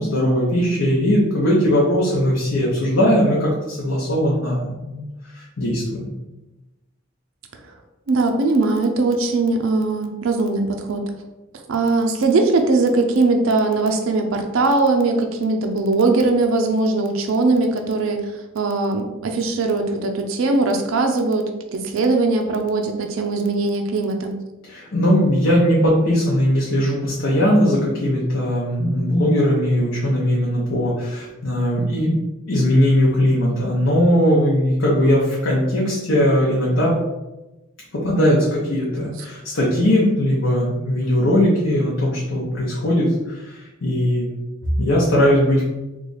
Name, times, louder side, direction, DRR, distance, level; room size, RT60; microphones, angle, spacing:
voice 1, 0.0-5.1 5.3-6.1 24.7-32.1 32.5-37.0 37.9-44.3 44.8-45.6, equal, 80° left, -5 dB, 0.7 m, -19 dB
voice 2, 8.1-11.0 11.7-24.3, right 3 dB, 80° right, 4 dB, 0.4 m, -20 dB
3.1 x 2.4 x 3.9 m, 1.0 s
head